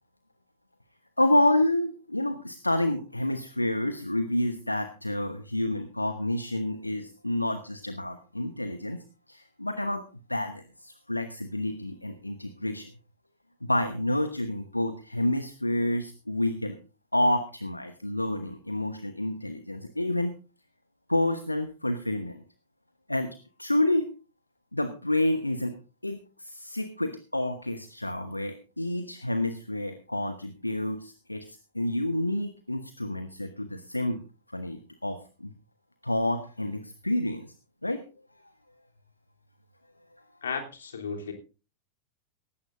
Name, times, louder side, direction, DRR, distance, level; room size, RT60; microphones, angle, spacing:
voice 1, 1.2-10.0 10.3-12.9 13.6-16.8 17.1-20.4 21.1-22.4 23.1-24.1 24.7-25.7 26.0-34.2 34.5-35.5 36.0-37.5 37.8-38.0, left 1 dB, 85° left, 10 dB, 1.1 m, -29 dB
voice 2, 40.4-41.3, left 5 dB, 70° left, 2 dB, 3.2 m, -34 dB
18.0 x 15.5 x 2.6 m, 0.34 s
figure-of-eight pair, 90°, 0 cm